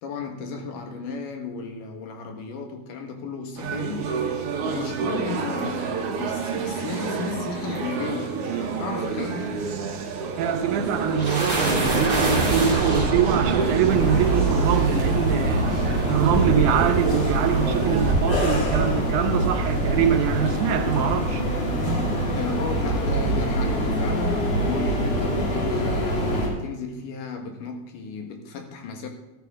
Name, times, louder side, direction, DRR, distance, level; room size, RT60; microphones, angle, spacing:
voice 1, 0.0-4.1 4.6-8.4 8.8-9.6 22.3-29.1, left 5 dB, 80° left, 3.1 m, -34 dB
sound 1, 3.6-18.2, right 5 dB, 60° right, 1.9 m, -30 dB
voice 2, 10.4-15.7 16.1-21.4, right 8 dB, 75° right, 2.3 m, -24 dB
sound 2, 10.6-21.1, right 2 dB, 30° right, 3.5 m, -27 dB
sound 3, 13.8-26.5, right 1 dB, 55° left, 4.1 m, -25 dB
13.5 x 13.5 x 3.7 m
omnidirectional pair, 3.7 m